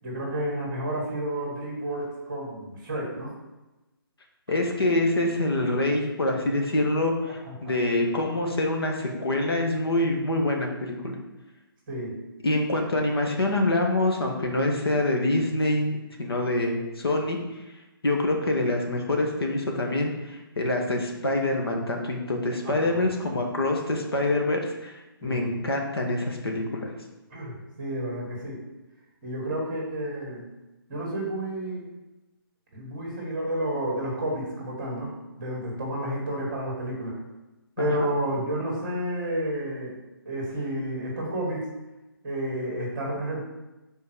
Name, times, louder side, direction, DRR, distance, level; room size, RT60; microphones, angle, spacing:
voice 1, 0.0-3.3 7.3-7.7 11.9-12.2 22.6-23.4 25.2-25.6 27.3-28.6 29.2-30.4 30.9-31.8 32.7-37.1 37.8-39.9 40.3-41.6 42.2-43.4, right 1 dB, 15° right, -2 dB, 1.8 m, -31 dB
voice 2, 4.5-11.2 12.4-17.4 18.0-25.0 25.2-26.9 37.8-37.9, left 2 dB, 80° left, 2 dB, 1.8 m, -25 dB
5.7 x 4.6 x 6.3 m, 1.0 s
hypercardioid pair, 180°, 13 cm